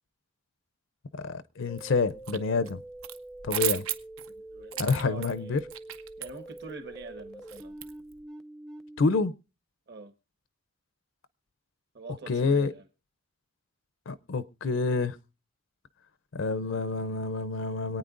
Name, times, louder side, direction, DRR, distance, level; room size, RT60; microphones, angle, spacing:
voice 1, 1.1-2.8 3.4-3.9 4.8-5.6 9.0-9.3 12.3-12.7 14.1-15.2 16.3-18.0, left 4 dB, 65° left, 0.5 m, -27 dB
sound 1, 1.7-9.2, right 1 dB, 5° left, 0.5 m, -45 dB
sound 2, 1.8-2.4 2.7-8.2, right 12 dB, 80° right, 0.7 m, -36 dB
voice 2, 4.3-5.5 6.2-7.8 9.9-10.1 11.9-12.9, right 3 dB, 50° right, 1.3 m, -44 dB
26.0 x 9.1 x 2.5 m
head